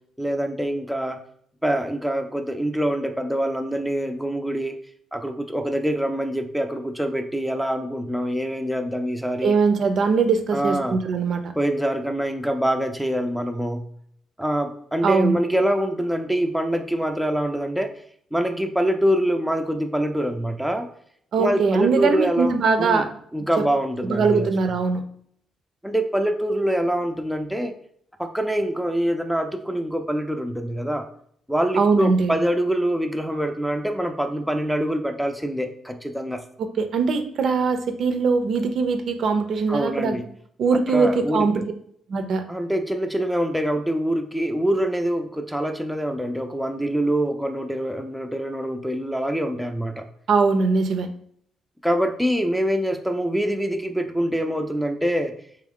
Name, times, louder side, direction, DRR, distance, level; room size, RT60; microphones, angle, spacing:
voice 1, 0.2-1.2 1.6-4.8 5.1-9.5 10.5-11.0 11.6-13.8 14.4-17.9 18.3-20.9 21.4-23.1 23.3-24.5 25.8-27.7 28.2-31.1 31.5-36.4 39.7-40.2 40.9-41.6 42.5-50.1 51.8-55.3, right 1 dB, ahead, 4 dB, 0.4 m, -25 dB
voice 2, 9.4-11.5 15.0-15.4 21.3-23.1 23.6-23.7 24.0-25.0 31.8-32.3 36.6-40.2 40.6-41.6 42.1-42.4 50.3-51.1, right 4 dB, 60° right, 7 dB, 0.5 m, -21 dB
3.4 x 3.0 x 3.6 m, 0.64 s
cardioid pair, 90°, 0 cm